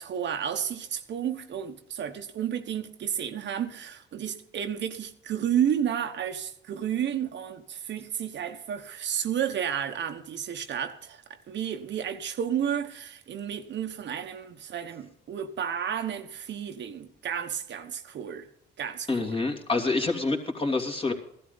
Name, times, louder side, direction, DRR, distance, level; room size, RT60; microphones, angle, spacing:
voice 1, 0.0-18.5 18.8-19.4, right 9 dB, 65° right, 1.2 m, -32 dB
voice 2, 19.1-21.1, left 3 dB, 25° left, 2.7 m, -27 dB
15.5 x 12.5 x 4.0 m
cardioid pair, 90°, 20 cm